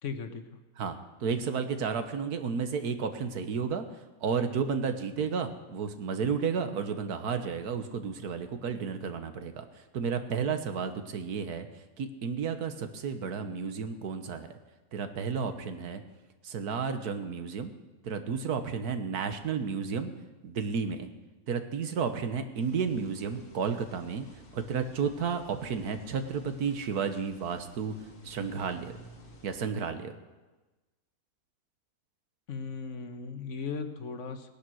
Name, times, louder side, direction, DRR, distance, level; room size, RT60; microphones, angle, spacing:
voice 1, 0.0-0.6 32.5-34.5, left 5 dB, 55° left, 8 dB, 1.4 m, -37 dB
voice 2, 1.2-3.8 4.2-9.6 9.9-11.7 12.0-14.5 14.9-16.0 16.4-17.7 18.0-20.1 20.4-21.1 21.5-24.2 24.5-27.9 28.2-28.9 29.4-30.1, right 6 dB, 90° right, 8 dB, 1.6 m, -32 dB
sound 1, 22.5-29.6, equal, 75° left, 2.5 m, -53 dB
18.0 x 10.5 x 6.3 m, 1.2 s
omnidirectional pair, 1.6 m